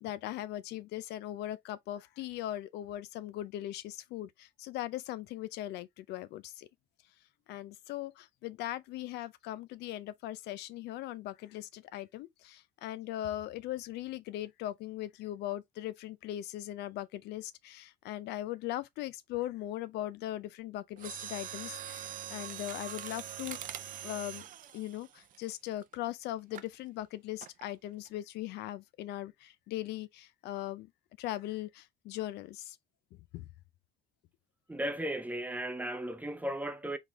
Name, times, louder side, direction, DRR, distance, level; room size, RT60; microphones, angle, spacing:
voice 1, 0.0-6.7 7.5-23.6 24.0-24.4 24.7-30.9 31.2-32.8 33.3-33.5, left 14 dB, 80° left, 0.5 m, -39 dB
Mechanisms, 21.0-25.9 26.5-26.8 27.4-27.7 28.1-28.2, right 10 dB, 55° right, 0.6 m, -43 dB
voice 2, 34.7-37.0, right 1 dB, 10° right, 0.6 m, -35 dB
3.9 x 3.4 x 2.9 m
cardioid pair, 110°, 17 cm